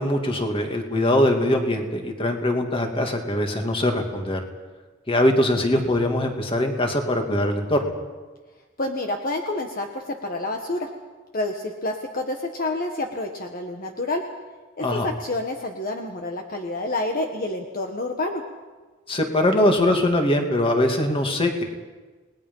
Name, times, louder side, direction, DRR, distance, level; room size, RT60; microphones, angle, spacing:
voice 1, 0.0-4.4 5.1-7.9 14.8-15.1 19.1-21.6, left 1 dB, 30° left, 3 dB, 2.5 m, -22 dB
voice 2, 8.8-10.9 11.3-14.2 14.8-18.4, left 2 dB, 45° left, 3 dB, 1.5 m, -28 dB
29.5 x 20.0 x 5.6 m, 1.3 s
head